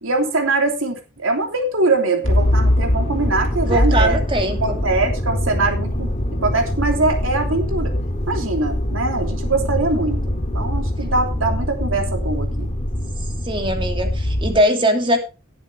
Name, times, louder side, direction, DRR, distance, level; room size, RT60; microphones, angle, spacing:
voice 1, 0.0-7.9 8.3-12.7, right 3 dB, 70° right, 3 dB, 3.1 m, -22 dB
Motor vehicle (road), 2.2-14.6, left 1 dB, 30° left, 1.8 m, -22 dB
voice 2, 3.7-4.8 13.4-15.2, right 1 dB, 25° right, 5 dB, 2.5 m, -20 dB
18.5 x 8.1 x 3.4 m, 0.29 s
head